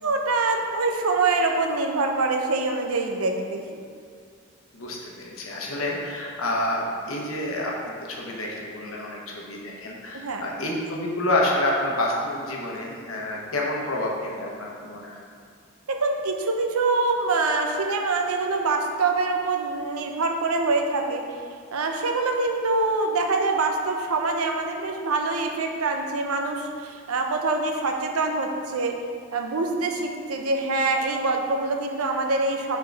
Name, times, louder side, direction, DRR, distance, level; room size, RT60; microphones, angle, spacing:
voice 1, 0.0-3.8 10.1-10.4 15.9-21.3 21.7-29.0 29.3-32.8, right 3 dB, 90° right, 3 dB, 0.6 m, -25 dB
voice 2, 4.7-15.2, left 1 dB, 75° left, -2 dB, 1.0 m, -28 dB
4.7 x 4.6 x 4.6 m, 2.2 s
head